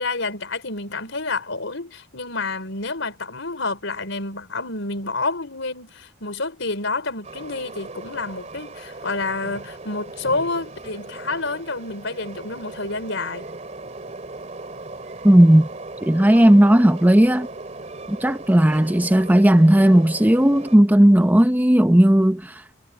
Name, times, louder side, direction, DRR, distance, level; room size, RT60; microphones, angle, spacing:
voice 1, 0.0-13.5, left 3 dB, 70° left, 5.3 m, -29 dB
Train, 7.2-20.8, right 2 dB, 35° right, 3.0 m, -38 dB
voice 2, 15.2-15.7 16.0-17.5 18.1-22.6, right 1 dB, 10° right, 0.6 m, -15 dB
head